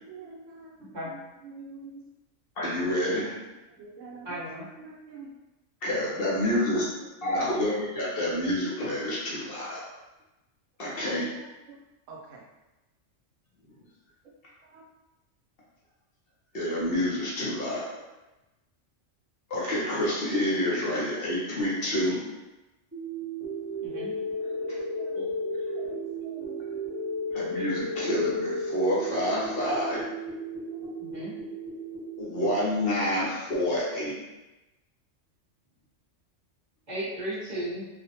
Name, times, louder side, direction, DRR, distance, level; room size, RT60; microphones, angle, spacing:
voice 1, 0.0-2.1 3.7-5.3 6.4-7.5 10.8-11.8 12.1-12.4 14.6-14.8 24.2-25.3 25.7-27.0 30.6-31.0, right 3 dB, 80° right, -2 dB, 0.9 m, -47 dB
voice 2, 0.8-1.1 4.2-4.7 23.8-24.1 31.0-31.3 36.9-37.8, right 1 dB, 40° right, -8 dB, 0.9 m, -35 dB
voice 3, 2.6-3.4 5.8-6.8 7.2-9.8 10.8-11.2 16.5-17.8 19.5-22.2 27.3-30.0 32.2-34.2, left 1 dB, 55° left, -6 dB, 0.8 m, -28 dB
sound 1, 22.9-32.9, equal, 20° right, 0.4 m, -34 dB
2.5 x 2.1 x 2.7 m, 1.0 s
omnidirectional pair, 1.3 m